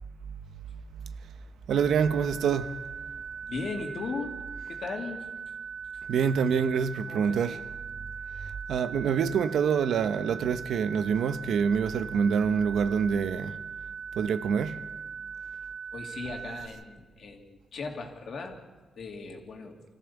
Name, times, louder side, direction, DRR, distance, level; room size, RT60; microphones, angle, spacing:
sound 1, 1.7-16.7, right 6 dB, 60° right, 1.2 m, -40 dB
voice 1, 1.7-2.8 6.1-7.6 8.4-13.6 14.1-14.9, right 6 dB, 80° right, 0.9 m, -26 dB
voice 2, 3.5-5.3 7.1-7.6 15.9-18.6 18.9-19.8, left 4 dB, 60° left, 2.8 m, -38 dB
25.5 x 14.5 x 7.2 m
cardioid pair, 100°, 0 cm